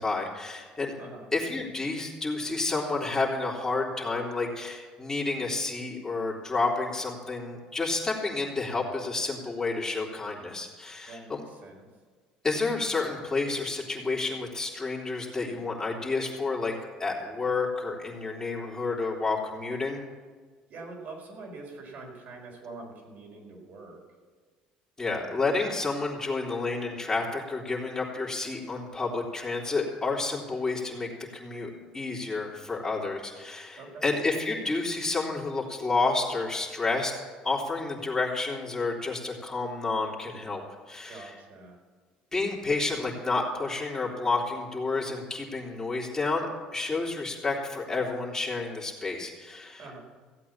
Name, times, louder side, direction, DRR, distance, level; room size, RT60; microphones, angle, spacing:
voice 1, 0.0-0.9 1.3-11.4 12.4-16.7 17.0-20.0 25.0-37.1 37.4-40.6 40.9-41.3 42.3-50.0, left 3 dB, 20° left, -4 dB, 3.2 m, -30 dB
voice 2, 11.1-11.9 20.7-24.0 33.8-34.0 41.1-41.8 49.8-50.0, right 3 dB, 55° right, 1 dB, 4.7 m, -44 dB
16.5 x 8.4 x 7.3 m, 1.5 s
supercardioid pair, 80°, 3 cm